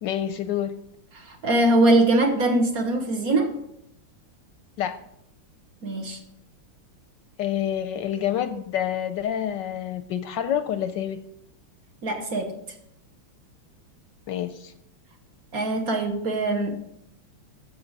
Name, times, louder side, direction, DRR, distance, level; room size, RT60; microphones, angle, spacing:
voice 1, 0.0-0.8 4.8-5.0 7.4-11.2 14.3-14.7, left 10 dB, 75° left, 10 dB, 1.1 m, -27 dB
voice 2, 1.1-3.5 5.8-6.2 12.0-12.5 15.5-16.7, right 2 dB, 50° right, 3 dB, 1.4 m, -22 dB
14.0 x 5.5 x 4.0 m, 0.76 s
omnidirectional pair, 2.2 m